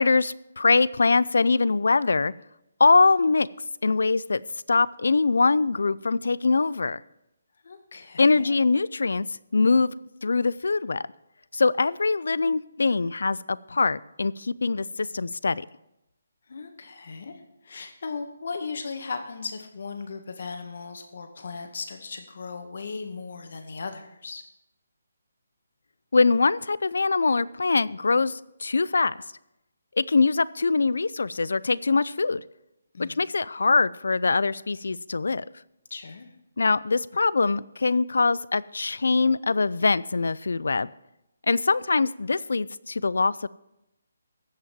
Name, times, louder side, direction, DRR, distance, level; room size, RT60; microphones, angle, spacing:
voice 1, 0.0-2.3 2.8-3.5 3.8-4.4 4.7-7.0 8.2-9.3 9.5-9.9 10.2-11.0 11.5-15.7 26.1-29.2 30.0-32.4 33.0-35.4 36.6-40.9 41.5-43.5, left 3 dB, 80° left, 20 dB, 0.4 m, -23 dB
voice 2, 7.6-8.6 16.5-24.4 32.9-33.2 35.9-36.3, left 4 dB, 60° left, 6 dB, 1.9 m, -37 dB
15.0 x 5.6 x 7.3 m, 0.87 s
hypercardioid pair, 165°, 0 cm